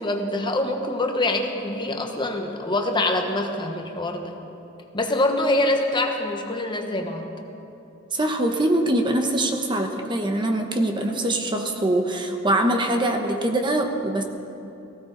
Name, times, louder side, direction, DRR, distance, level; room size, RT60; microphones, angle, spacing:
voice 1, 0.0-4.3 4.9-7.2, left 1 dB, 20° left, 4 dB, 1.1 m, -25 dB
voice 2, 8.1-14.2, right 1 dB, 25° right, 4 dB, 0.9 m, -23 dB
18.5 x 16.0 x 3.9 m, 2.8 s
head